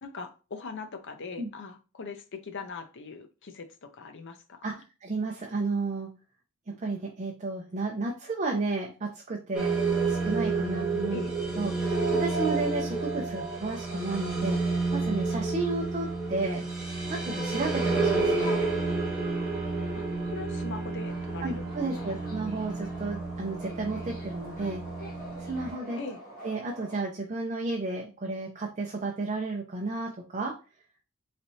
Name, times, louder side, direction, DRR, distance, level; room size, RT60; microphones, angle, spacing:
voice 1, 0.0-4.8 11.1-11.3 18.4-18.7 19.9-22.1 26.0-26.2, left 4 dB, 60° left, 0.7 m, -41 dB
voice 2, 5.0-6.1 6.7-9.8 10.1-11.3 11.6-16.7 17.1-18.5 21.4-24.8 25.4-26.0 26.4-30.5, right 3 dB, 35° right, 0.6 m, -32 dB
sound 1, 9.5-25.7, right 3 dB, 5° right, 1.2 m, -30 dB
Subway metro underground, 21.0-27.0, right 1 dB, 45° left, 1.6 m, -45 dB
4.2 x 3.3 x 2.7 m
head